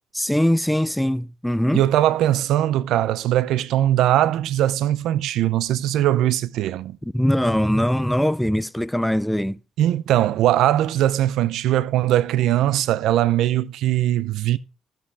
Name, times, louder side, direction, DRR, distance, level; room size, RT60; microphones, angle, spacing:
voice 1, 0.1-1.8 7.1-9.6, equal, 5° left, 0.4 m, -21 dB
voice 2, 1.7-7.0 9.8-14.6, right 13 dB, 85° right, 0.5 m, -20 dB
14.0 x 7.5 x 3.4 m
cardioid pair, 90°, 0 cm